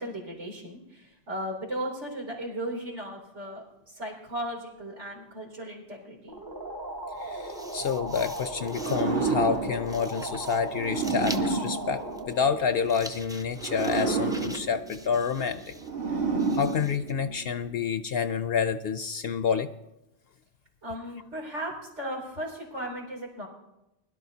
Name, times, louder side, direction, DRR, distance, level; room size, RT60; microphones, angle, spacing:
voice 1, 0.0-6.4 20.8-23.5, right 1 dB, 85° right, -2 dB, 3.5 m, -36 dB
sound 1, 6.3-13.7, right 1 dB, 20° right, 0.8 m, -38 dB
voice 2, 7.2-15.7 16.5-19.7, left 6 dB, 65° left, 10 dB, 0.7 m, -28 dB
sound 2, 7.2-17.1, equal, 5° right, 0.4 m, -45 dB
sound 3, 8.7-12.8 13.5-17.5, right 4 dB, 55° right, 1.6 m, -31 dB
21.0 x 12.0 x 2.8 m, 0.90 s
omnidirectional pair, 1.2 m